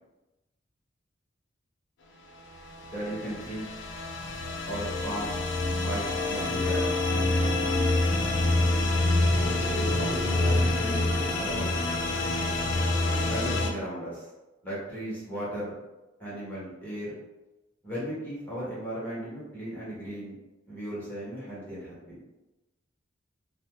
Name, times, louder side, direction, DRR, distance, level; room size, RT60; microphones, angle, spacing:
sound 1, 2.7-13.7, left 2 dB, 60° left, 0.5 m, -26 dB
voice 1, 2.8-3.7 4.7-5.4 5.7-8.0 9.7-11.7 13.3-14.3 14.6-15.7 16.2-17.1 17.8-20.3 20.7-22.2, equal, 10° left, -9 dB, 1.2 m, -36 dB
2.9 x 2.2 x 3.2 m, 1.0 s
head